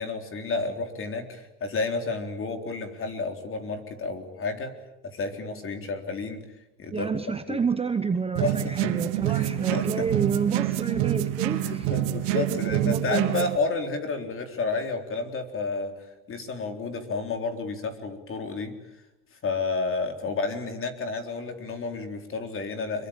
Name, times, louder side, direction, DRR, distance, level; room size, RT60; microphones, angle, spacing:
voice 1, 0.0-4.7 5.0-6.4 6.8-7.1 7.5-7.6 8.4-10.1 11.5-18.7 19.3-23.1, left 3 dB, 25° left, 6 dB, 3.8 m, -31 dB
voice 2, 6.9-11.9 12.3-13.4, right 5 dB, 15° right, 9 dB, 0.9 m, -29 dB
sound 1, 8.3-13.6, right 15 dB, 90° right, 1.8 m, -27 dB
26.5 x 23.0 x 8.8 m, 0.96 s
cardioid pair, 145°, 46 cm